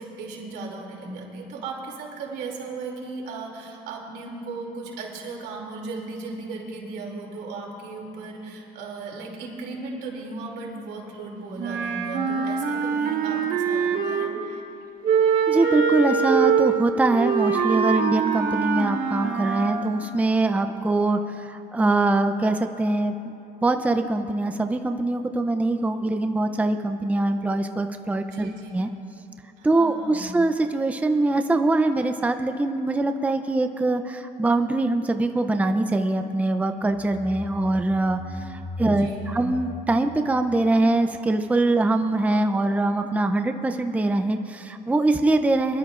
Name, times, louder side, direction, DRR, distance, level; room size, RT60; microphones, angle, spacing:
voice 1, 0.0-14.6 28.3-28.7 29.6-30.3 39.0-39.4, right 3 dB, 85° right, -1 dB, 2.7 m, -36 dB
Wind instrument woodwind instrument, 11.6-14.5 15.0-19.9, right 6 dB, 60° right, 1.2 m, -23 dB
voice 2, 15.5-23.3 23.6-28.9 29.6-45.8, right 2 dB, 10° right, 7 dB, 0.5 m, -23 dB
sound 1, 36.8-41.4, left 2 dB, 25° left, 3.5 m, -38 dB
24.0 x 12.0 x 2.5 m, 2.9 s
cardioid pair, 110°, 17 cm